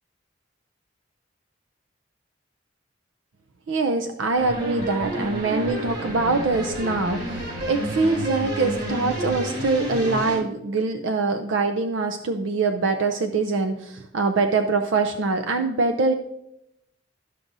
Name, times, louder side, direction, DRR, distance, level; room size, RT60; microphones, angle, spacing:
voice 1, 3.7-16.1, right 3 dB, 75° right, 7 dB, 0.5 m, -24 dB
sound 1, 4.3-10.4, right 1 dB, 60° right, 3.2 m, -30 dB
12.5 x 6.0 x 2.6 m, 0.83 s
head